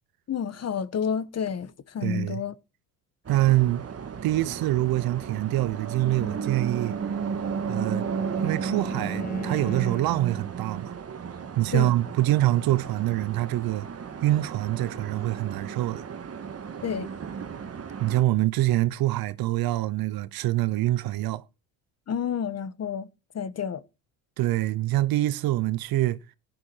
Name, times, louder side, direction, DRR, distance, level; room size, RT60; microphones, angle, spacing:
voice 1, 0.3-2.5 11.7-11.9 16.8-17.1 22.1-23.1 23.3-23.8, left 7 dB, 40° left, 1.4 m, -30 dB
voice 2, 2.0-2.4 3.3-3.8 4.2-7.0 7.7-8.1 8.4-10.9 11.6-13.9 14.2-16.0 18.0-21.4 24.4-26.2, right 16 dB, 65° right, 0.9 m, -25 dB
sound 1, 3.2-18.2, right 6 dB, 40° right, 1.8 m, -34 dB
Bowed string instrument, 6.6-10.4, left 5 dB, 25° left, 1.5 m, -42 dB
14.0 x 11.0 x 4.6 m
supercardioid pair, 70°, 38 cm